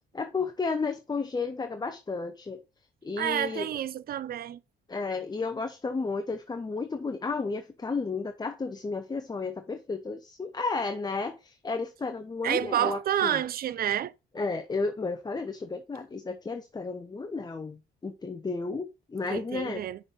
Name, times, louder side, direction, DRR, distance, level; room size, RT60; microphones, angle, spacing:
voice 1, 0.1-2.6 3.0-3.7 4.9-13.4 14.3-19.8, left 4 dB, 20° left, 0.7 m, -33 dB
voice 2, 3.2-4.6 12.4-14.1 19.3-20.0, right 11 dB, 50° right, 0.5 m, -29 dB
5.9 x 4.0 x 5.2 m
cardioid pair, 90°, 20 cm